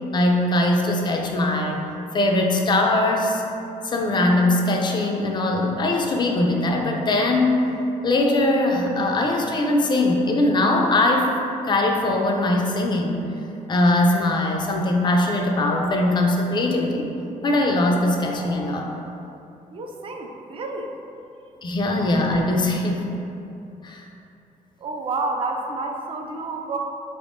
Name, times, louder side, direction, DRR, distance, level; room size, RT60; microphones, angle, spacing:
voice 1, 0.1-1.8 2.1-3.4 3.8-7.7 8.0-11.3 11.6-13.3 13.7-17.1 17.4-18.9 21.6-23.1 23.8-24.1, left 2 dB, 35° left, 1 dB, 0.4 m, -21 dB
voice 2, 19.7-20.9 24.8-26.8, right 3 dB, 40° right, 3 dB, 0.4 m, -29 dB
4.2 x 3.5 x 2.5 m, 2.7 s
cardioid pair, 140°, 14 cm